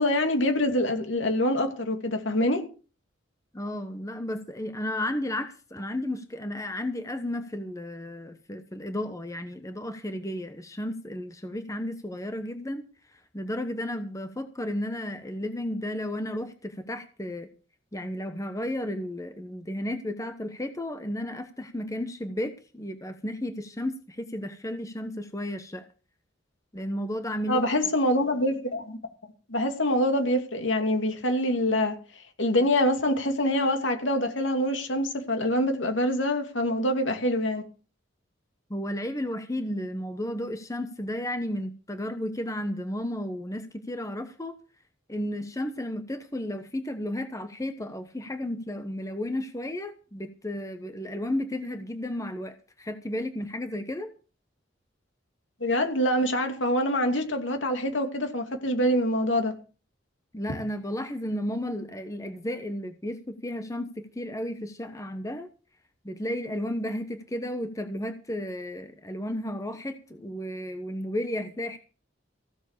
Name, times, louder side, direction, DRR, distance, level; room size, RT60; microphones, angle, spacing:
voice 1, 0.0-2.6 27.5-29.0 29.5-31.9 32.4-37.6 55.6-59.5, left 1 dB, 75° left, 2.5 m, -25 dB
voice 2, 3.5-12.8 13.1-17.5 17.9-25.8 26.7-27.6 38.7-44.5 45.1-54.1 60.3-65.5 66.0-71.8, left 1 dB, 15° left, 1.1 m, -33 dB
15.5 x 7.3 x 6.7 m
head